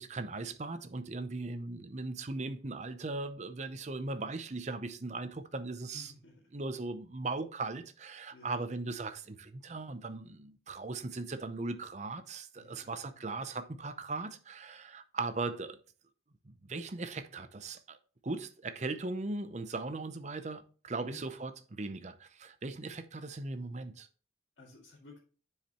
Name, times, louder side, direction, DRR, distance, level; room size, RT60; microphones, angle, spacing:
voice 1, 0.0-6.1 6.5-15.8 16.4-18.0 18.2-24.1, right 3 dB, 40° right, 0.7 m, -38 dB
voice 2, 5.9-6.4 8.3-8.5 12.6-13.2 21.0-21.2 24.6-25.2, left 2 dB, 75° left, 2.1 m, -54 dB
10.0 x 4.9 x 3.0 m
head